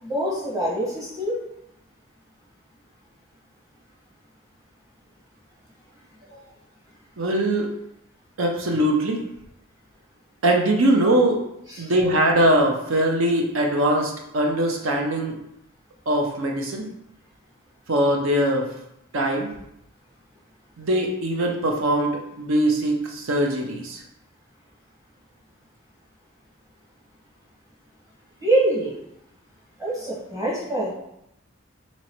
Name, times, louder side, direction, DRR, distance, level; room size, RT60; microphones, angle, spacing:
voice 1, 0.0-1.4 11.7-11.8 28.4-29.0 29.8-30.9, right 1 dB, 15° right, -6 dB, 1.1 m, -24 dB
voice 2, 7.2-7.7 8.4-9.2 10.4-11.4 11.8-15.4 16.1-16.9 17.9-18.7 19.1-19.5 20.8-24.0, right 1 dB, 70° right, 2 dB, 0.7 m, -21 dB
3.0 x 3.0 x 4.3 m, 0.81 s
head